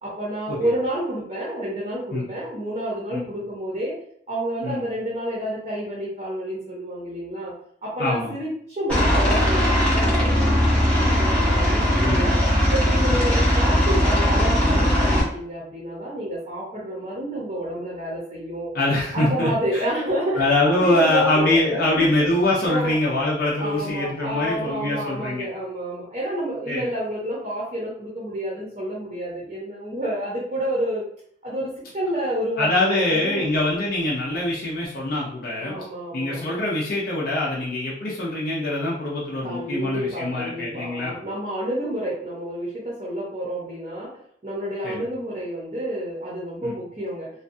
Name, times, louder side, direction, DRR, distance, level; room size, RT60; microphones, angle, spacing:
voice 1, 0.0-3.9 4.3-7.5 7.8-12.3 12.7-18.7 19.1-22.1 22.6-23.0 23.6-31.0 31.4-33.5 35.6-36.5 39.4-44.2 44.4-47.3, equal, 35° right, -5 dB, 0.7 m, -29 dB
voice 2, 8.0-8.3 12.0-12.2 13.1-13.2 18.7-19.8 20.4-25.5 26.7-26.8 32.6-35.8 36.1-41.1 44.8-45.0 46.6-46.7, left 2 dB, 55° left, -5 dB, 0.5 m, -24 dB
Aircraft, 8.9-15.2, equal, 10° left, 0.7 m, -19 dB
2.5 x 2.2 x 2.6 m, 0.64 s
head